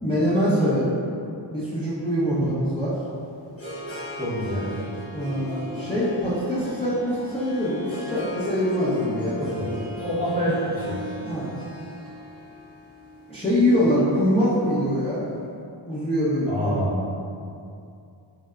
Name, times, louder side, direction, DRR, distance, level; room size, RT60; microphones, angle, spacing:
voice 1, 0.0-1.0 1.5-3.0 5.1-9.4 9.7-9.8 11.2-11.5 13.3-15.3 15.8-16.8, equal, 10° left, -12 dB, 0.7 m, -24 dB
Harp, 2.9-15.1, left 1 dB, 30° left, 1.0 m, -38 dB
voice 2, 4.2-4.7 9.4-11.0 16.5-17.0, equal, 15° right, -9 dB, 1.0 m, -27 dB
3.2 x 2.7 x 2.4 m, 2.5 s
cardioid pair, 60°, 49 cm